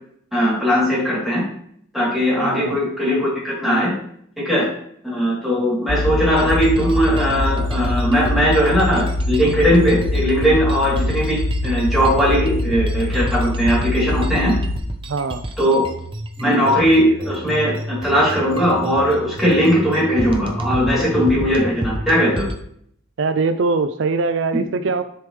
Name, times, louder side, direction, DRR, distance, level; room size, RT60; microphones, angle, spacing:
voice 1, 0.3-1.4 1.9-3.9 4.4-4.7 5.0-14.5 15.6-15.8 16.4-22.5, equal, ahead, -7 dB, 3.2 m, -18 dB
voice 2, 2.4-2.8 15.1-15.4 23.2-25.0, right 4 dB, 65° right, 10 dB, 0.4 m, -21 dB
sound 1, 5.9-14.8, left 1 dB, 35° left, 0.5 m, -23 dB
sound 2, 6.4-22.6, right 1 dB, 25° right, 0.7 m, -31 dB
10.5 x 4.8 x 3.3 m, 0.67 s
head